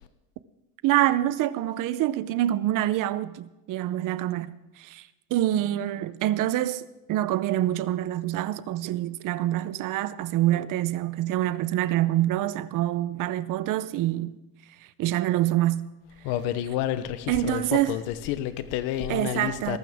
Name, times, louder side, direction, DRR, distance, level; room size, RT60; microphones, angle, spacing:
voice 1, 0.8-14.4 15.0-15.9 17.3-18.0 19.1-19.8, right 14 dB, 55° right, 0.7 m, -26 dB
voice 2, 16.2-19.8, left 11 dB, 85° left, 0.9 m, -29 dB
20.5 x 12.0 x 3.6 m
cardioid pair, 135°, 38 cm